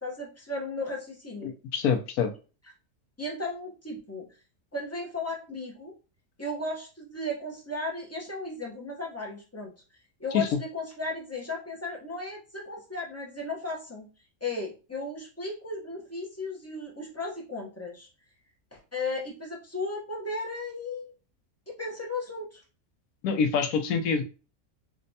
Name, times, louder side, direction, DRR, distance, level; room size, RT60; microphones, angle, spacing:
voice 1, 0.0-1.5 3.2-4.3 4.7-5.9 6.4-9.7 10.2-14.1 14.4-18.1 18.7-21.1 21.7-22.6, left 2 dB, 25° left, -2 dB, 0.3 m, -35 dB
voice 2, 1.4-2.3 10.3-10.5 23.2-24.2, left 6 dB, 80° left, 7 dB, 1.1 m, -26 dB
4.9 x 2.2 x 2.6 m, 0.34 s
omnidirectional pair, 1.6 m